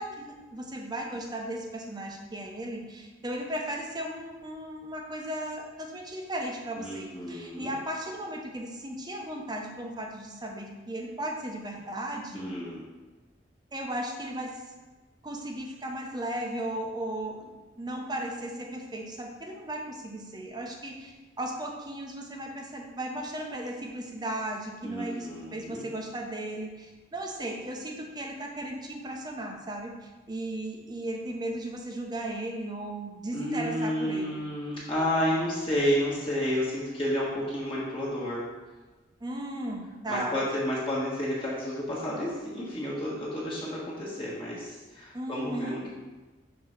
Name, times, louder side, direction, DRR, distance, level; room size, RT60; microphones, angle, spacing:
voice 1, 0.0-12.5 13.7-14.5 15.2-34.4 39.2-40.3 45.1-45.8, right 1 dB, 20° right, 1 dB, 0.8 m, -36 dB
voice 2, 6.8-7.7 12.3-12.9 24.8-25.9 33.3-38.5 40.1-45.9, equal, 30° left, -7 dB, 1.4 m, -31 dB
5.7 x 3.8 x 5.9 m, 1.2 s
head